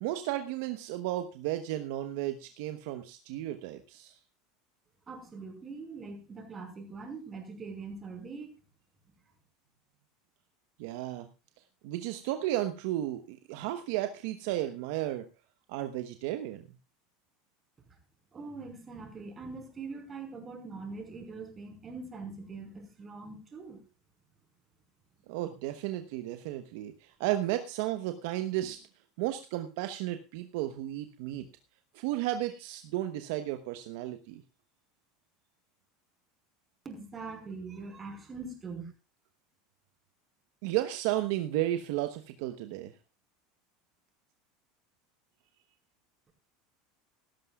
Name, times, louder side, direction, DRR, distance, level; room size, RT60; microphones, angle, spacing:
voice 1, 0.0-4.2 10.8-11.3 11.8-15.3 15.7-16.6 25.3-28.8 29.2-31.5 31.9-34.4 40.6-42.9, right 14 dB, 70° right, 8 dB, 1.0 m, -33 dB
voice 2, 5.1-8.6 18.3-23.8 36.9-38.9, right 4 dB, 30° right, 5 dB, 5.2 m, -42 dB
17.0 x 13.5 x 2.4 m, 0.29 s
hypercardioid pair, 90°, 0 cm